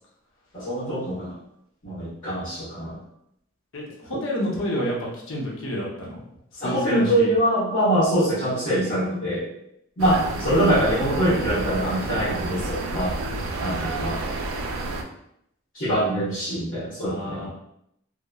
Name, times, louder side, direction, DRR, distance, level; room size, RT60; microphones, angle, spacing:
voice 1, 0.5-1.3 1.8-3.0 4.1-4.2 6.6-9.5 10.0-13.2 13.6-14.3 15.7-17.5, right 1 dB, 45° left, -11 dB, 1.1 m, -24 dB
voice 2, 4.1-6.1 6.6-7.3 17.0-17.5, equal, 75° left, -3 dB, 0.7 m, -28 dB
sound 1, 10.0-15.0, right 2 dB, 90° right, 0.4 m, -30 dB
2.9 x 2.0 x 2.3 m, 0.76 s
head